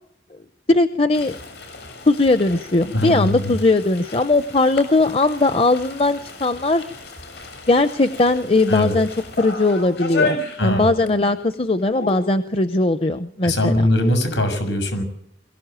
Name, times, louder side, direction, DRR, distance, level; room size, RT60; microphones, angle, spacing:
voice 1, 0.7-1.4 2.0-6.9 7.7-9.1 9.4-13.9, left 2 dB, 30° left, 10 dB, 0.8 m, -19 dB
sound 1, 1.1-11.2 11.5-11.6 11.9-12.3, left 3 dB, 70° left, 7.1 m, -33 dB
voice 2, 2.9-3.5 8.7-8.9 10.6-10.9 13.4-15.0, left 1 dB, 90° left, 7 dB, 6.7 m, -21 dB
23.0 x 15.0 x 9.0 m, 0.75 s
head